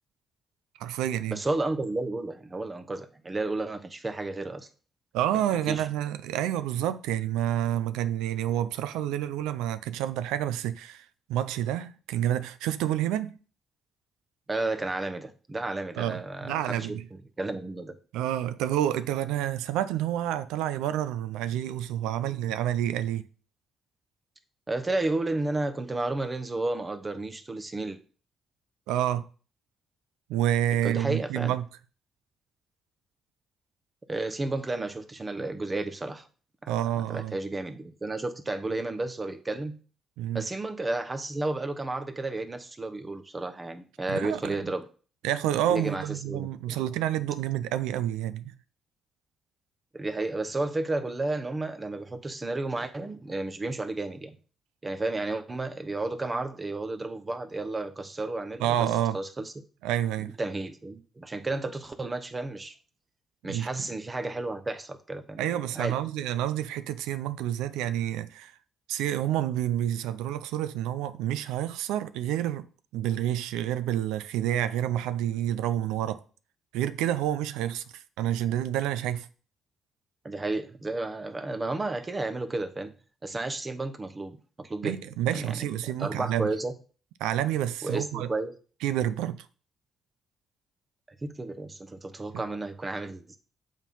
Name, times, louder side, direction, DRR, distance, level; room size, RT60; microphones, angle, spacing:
voice 1, 0.8-1.4 5.1-13.4 16.0-17.0 18.1-23.2 28.9-29.2 30.3-31.6 36.7-37.4 40.2-40.4 44.1-44.6 45.2-48.5 58.6-59.2 59.8-60.3 63.5-63.7 65.4-68.5 68.9-72.7 72.9-76.2 76.7-79.3 84.8-86.5 87.2-88.3 88.8-89.5 92.3-92.4, right 11 dB, 90° right, 0.4 m, -29 dB
voice 2, 1.3-4.7 5.7-5.9 14.5-18.0 24.7-28.0 30.8-31.5 34.1-36.3 36.6-36.7 37.1-39.8 40.3-44.8 45.7-46.8 49.9-54.4 54.8-58.9 59.1-59.5 60.2-62.8 63.4-65.9 80.2-82.9 83.2-85.0 85.3-86.7 87.8-88.5 91.2-93.4, right 2 dB, 30° right, 1.0 m, -32 dB
7.2 x 3.7 x 5.5 m
supercardioid pair, 60°, 0 cm